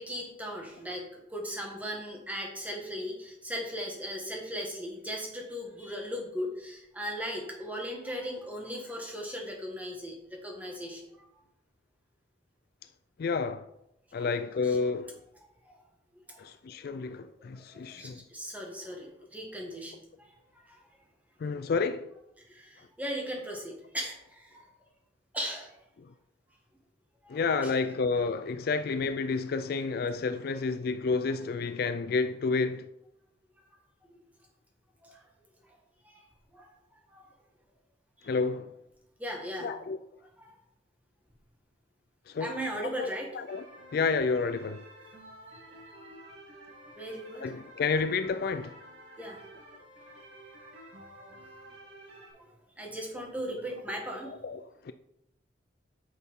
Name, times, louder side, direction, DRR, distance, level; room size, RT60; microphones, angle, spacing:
voice 1, 0.0-11.3 14.1-14.2 14.6-14.8 15.6-15.8 16.1-16.4 16.8-16.9 17.5-20.8 22.4-24.7 25.3-25.8 27.2-27.7 33.6-33.8 34.1-34.2 35.0-35.2 35.6-35.7 36.0-36.2 36.5-36.7 37.1-37.3 38.2-38.3 39.2-39.7 40.4-40.5 42.4-43.3 45.5-45.7 47.0-47.5 49.2-49.4 52.3-52.5 52.8-54.3, equal, 10° right, 1.7 m, -38 dB
voice 2, 13.2-13.7 14.1-15.1 16.4-18.2 21.4-22.1 27.3-32.9 38.3-38.7 39.6-40.0 42.3-42.5 42.8-43.1 43.3-43.6 43.9-44.8 47.4-48.8 54.4-54.9, left 4 dB, 50° left, 0.3 m, -30 dB
sound 1, 43.5-52.3, right 1 dB, 60° right, 2.4 m, -51 dB
9.3 x 6.3 x 3.7 m
head